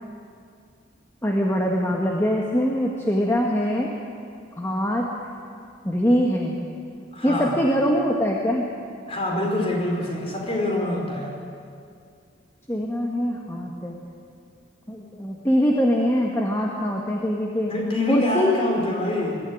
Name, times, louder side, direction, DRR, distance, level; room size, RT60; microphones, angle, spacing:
voice 1, 1.2-3.9 4.6-5.1 5.8-6.6 7.2-8.7 12.7-14.0 14.9-17.7 18.1-18.5, equal, 15° left, -1 dB, 1.5 m, -23 dB
voice 2, 7.1-7.6 9.1-11.3 17.7-19.4, left 1 dB, 30° left, 0 dB, 4.2 m, -25 dB
21.5 x 14.0 x 9.4 m, 2.4 s
head